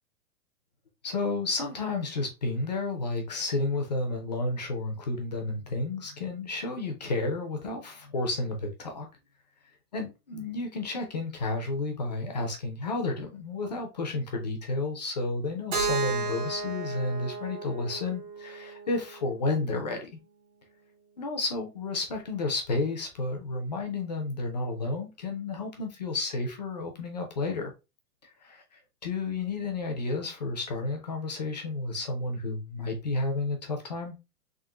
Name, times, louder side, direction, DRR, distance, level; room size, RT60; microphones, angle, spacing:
voice 1, 1.0-9.1 9.9-20.1 21.2-27.7 28.4-28.6 29.0-34.2, left 3 dB, 30° left, 0.5 m, -31 dB
Keyboard (musical), 15.7-19.6, right 4 dB, 65° right, 1.8 m, -34 dB
3.7 x 2.5 x 3.6 m
hypercardioid pair, 175°, 45 cm